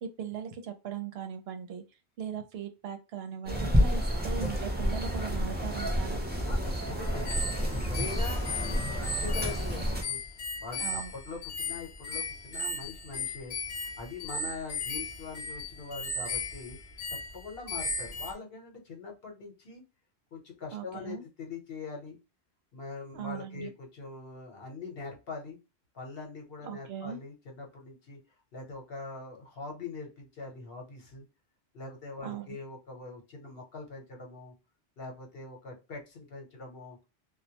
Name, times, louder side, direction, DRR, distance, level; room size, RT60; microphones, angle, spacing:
voice 1, 0.0-1.8 2.2-6.2 10.8-11.1 20.7-21.2 23.1-23.7 26.6-27.2 32.2-32.6, right 8 dB, 70° right, 7 dB, 0.8 m, -39 dB
sound 1, 3.5-10.0, equal, 15° right, 0.3 m, -29 dB
voice 2, 6.5-7.4 7.7-10.2 10.6-13.6 14.0-16.8 17.1-19.8 20.3-22.2 22.7-25.6 25.9-28.2 28.5-31.3 31.7-34.5 35.0-37.0, left 4 dB, 65° left, 1 dB, 1.0 m, -43 dB
sound 2, 7.3-18.3, left 2 dB, 45° left, 0.6 m, -36 dB
2.2 x 2.1 x 2.7 m, 0.29 s
omnidirectional pair, 1.1 m